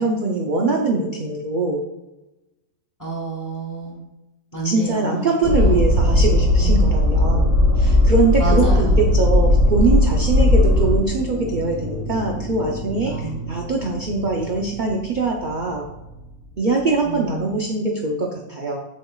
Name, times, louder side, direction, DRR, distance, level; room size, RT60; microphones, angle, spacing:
voice 1, 0.0-1.8 4.5-15.8 16.6-18.8, right 3 dB, 60° right, -1 dB, 0.5 m, -22 dB
voice 2, 3.0-4.0 4.5-5.8 6.6-6.9 8.4-9.0 13.0-13.5 17.0-17.7, right 4 dB, 15° left, -2 dB, 0.9 m, -29 dB
sound 1, 5.4-11.0, left 1 dB, 25° right, 1.0 m, -16 dB
sound 2, 10.4-17.6, equal, 50° left, 1.1 m, -35 dB
7.6 x 5.2 x 2.3 m, 1.0 s
omnidirectional pair, 1.7 m